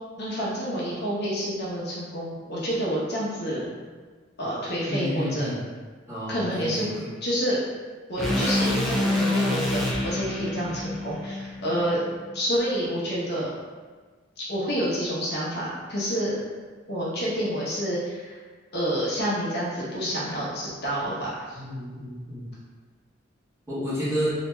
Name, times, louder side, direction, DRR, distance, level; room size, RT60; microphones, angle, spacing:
voice 1, 0.2-3.7 4.4-5.5 6.3-6.9 7.2-7.6 8.1-12.0 12.3-13.5 14.4-16.3 16.9-18.4 18.7-21.6, equal, 55° left, -7 dB, 1.0 m, -28 dB
voice 2, 4.9-5.6 6.1-7.1 21.5-22.5 23.7-24.3, equal, 15° right, -12 dB, 1.4 m, -30 dB
sound 1, 8.2-12.4, left 1 dB, ahead, 0.5 m, -27 dB
3.1 x 2.7 x 3.3 m, 1.4 s
head